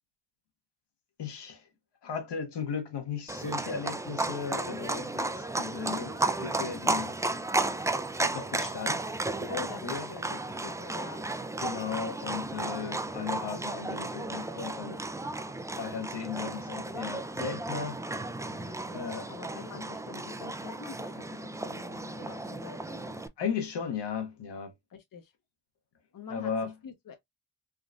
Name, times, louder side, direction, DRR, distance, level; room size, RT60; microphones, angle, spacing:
voice 1, 1.2-1.6 2.0-7.1 8.2-9.1 9.4-10.1 11.6-15.0 15.8-18.0 18.9-19.3 23.4-24.7 26.3-26.7, left 6 dB, 70° left, 1.1 m, -36 dB
Livestock farm animals working animals, 3.3-23.3, right 2 dB, 10° right, 0.4 m, -34 dB
voice 2, 9.5-11.3 18.5-23.2 24.9-25.4 26.1-27.2, left 6 dB, 50° left, 0.8 m, -46 dB
3.7 x 2.4 x 2.5 m
supercardioid pair, 40°, 43 cm